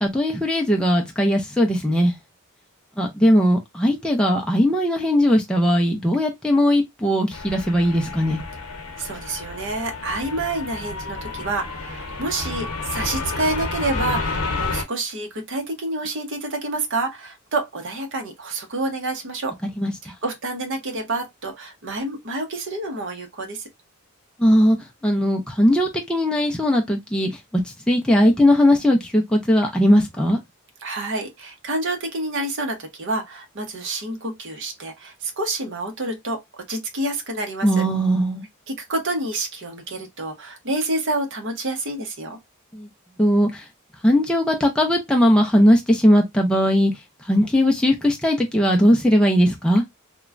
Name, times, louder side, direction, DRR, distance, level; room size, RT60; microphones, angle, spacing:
voice 1, 0.0-2.1 3.0-8.4 19.8-19.9 24.4-24.8 25.0-27.6 27.9-30.4 37.6-38.5 42.7-42.9 43.2-43.6 44.0-46.9 47.3-49.8, equal, 5° left, 0.4 m, -19 dB
sound 1, 7.3-14.8, left 3 dB, 75° left, 0.8 m, -30 dB
voice 2, 9.0-19.5 20.0-23.7 30.8-37.8 38.7-42.4, right 2 dB, 55° right, 0.8 m, -28 dB
3.0 x 2.1 x 2.4 m
head